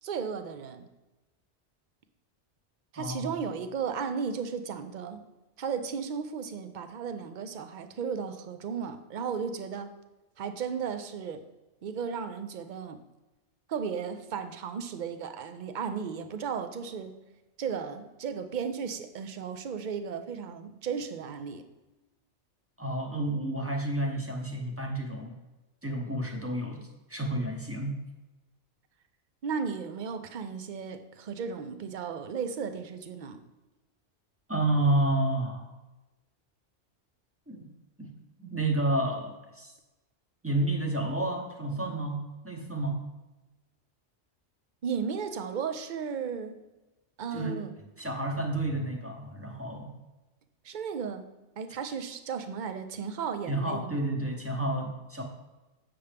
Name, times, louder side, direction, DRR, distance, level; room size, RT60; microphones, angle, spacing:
voice 1, 0.0-0.9 2.9-5.2 5.6-9.9 10.4-11.4 11.8-13.0 13.7-17.1 17.6-21.7 29.4-33.4 44.8-46.6 47.2-47.7 50.6-51.3 51.6-54.0, right 6 dB, 50° right, 9 dB, 0.7 m, -35 dB
voice 2, 3.0-3.3 22.8-25.3 25.8-28.0 34.5-35.7 37.5-37.7 38.0-38.1 38.4-39.7 40.4-43.0 47.3-47.6 48.0-50.0 53.5-55.2, right 1 dB, 15° right, 1 dB, 0.9 m, -30 dB
7.8 x 6.9 x 3.4 m, 1.1 s
omnidirectional pair, 1.2 m